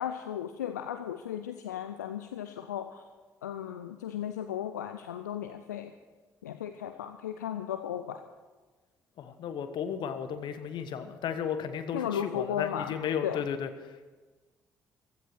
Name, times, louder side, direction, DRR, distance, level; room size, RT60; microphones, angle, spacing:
voice 1, 0.0-3.0 3.4-5.9 6.4-8.2 11.9-12.9 13.2-13.4, left 10 dB, 80° left, 8 dB, 0.5 m, -35 dB
voice 2, 9.2-13.7, left 7 dB, 55° left, 10 dB, 1.2 m, -34 dB
15.5 x 13.0 x 6.2 m, 1.3 s
figure-of-eight pair, 40°, 9 cm